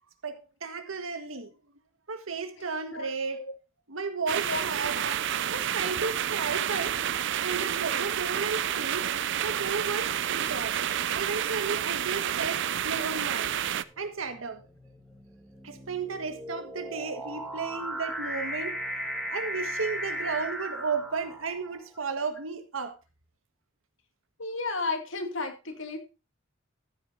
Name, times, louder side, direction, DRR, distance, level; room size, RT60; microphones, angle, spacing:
voice 1, 0.2-1.5 2.1-3.4 3.9-4.9 5.5-7.0 7.4-9.1 9.4-10.7 11.1-13.5 14.0-14.6 15.6-18.8 19.3-22.9, right 4 dB, 90° right, 1.6 m, -33 dB
sound 1, 4.3-13.8, right 10 dB, 60° right, 0.5 m, -29 dB
sound 2, 12.6-12.7 13.5-21.8, equal, ahead, 1.8 m, -37 dB
voice 2, 24.4-26.0, left 3 dB, 70° left, 2.4 m, -33 dB
14.0 x 9.3 x 2.7 m
head